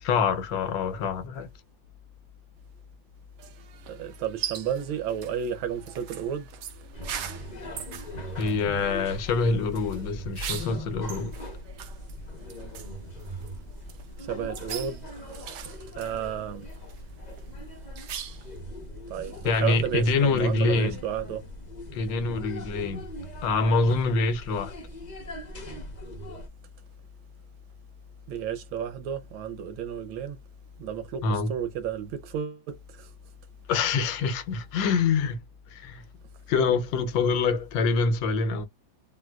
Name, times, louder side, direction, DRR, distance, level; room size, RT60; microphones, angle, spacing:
voice 1, 0.0-1.5 8.4-11.3 19.4-21.0 21.9-23.1 23.4-24.8 31.2-31.5 33.7-35.4 35.7-36.0 36.5-38.7, left 4 dB, 80° left, 1.4 m, -25 dB
sound 1, 3.4-18.6, right 10 dB, 70° right, 1.1 m, -42 dB
voice 2, 3.9-6.5 14.2-16.7 19.1-21.4 28.3-30.4 30.8-33.1, right 8 dB, 85° right, 1.6 m, -32 dB
sound 2, 6.9-26.5, equal, 35° left, 0.7 m, -40 dB
3.8 x 2.5 x 2.3 m
omnidirectional pair, 2.1 m